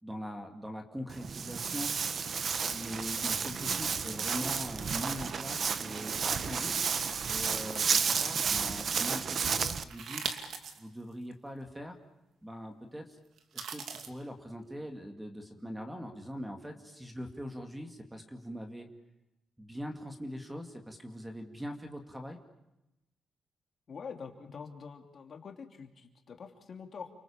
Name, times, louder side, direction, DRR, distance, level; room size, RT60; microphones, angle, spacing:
voice 1, 0.0-1.9 2.7-6.7 7.3-10.3 10.8-12.0 12.4-13.2 13.5-18.9 19.6-22.4, equal, 5° right, 4 dB, 2.3 m, -42 dB
Walk footsteps, 1.1-9.8, right 6 dB, 40° right, 1.0 m, -32 dB
sound 1, 9.9-10.8 11.3-11.4 13.4-14.1, right 6 dB, 65° right, 2.6 m, -39 dB
voice 2, 23.9-27.1, left 6 dB, 40° left, 4 dB, 2.8 m, -45 dB
30.0 x 24.5 x 7.3 m, 0.92 s
wide cardioid pair, 170°, 0 cm